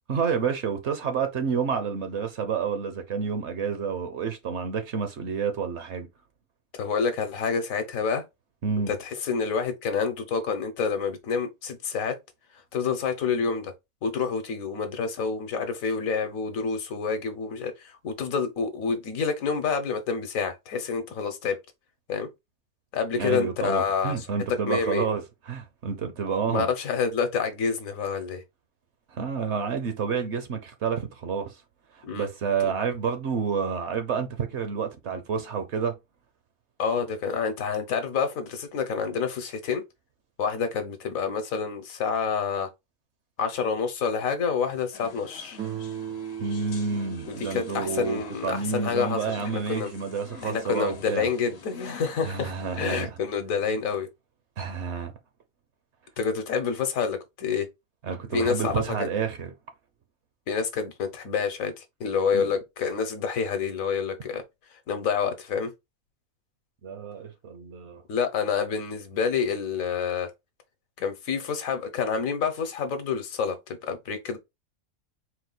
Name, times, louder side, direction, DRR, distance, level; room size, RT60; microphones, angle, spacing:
voice 1, 0.1-6.1 8.6-8.9 23.2-26.7 29.1-31.6 32.1-36.0 46.4-51.3 52.2-53.1 54.6-55.1 58.0-59.5 62.3-62.4 66.8-68.0, right 6 dB, 60° right, 0.9 m, -29 dB
voice 2, 6.7-8.2 8.9-12.1 12.7-13.7 14.0-21.6 22.1-22.3 22.9-24.3 24.7-25.1 26.5-28.4 32.0-32.3 36.8-39.8 40.4-42.7 43.4-45.6 47.3-49.3 49.7-49.9 50.4-54.1 56.2-57.7 58.3-59.1 60.5-64.4 64.9-65.7 68.1-70.3 71.0-74.4, left 6 dB, 70° left, 1.3 m, -28 dB
sound 1, 44.9-52.8, left 5 dB, 55° left, 0.9 m, -46 dB
Guitar, 45.6-50.4, right 9 dB, 90° right, 1.1 m, -40 dB
4.4 x 2.3 x 3.8 m
omnidirectional pair, 1.5 m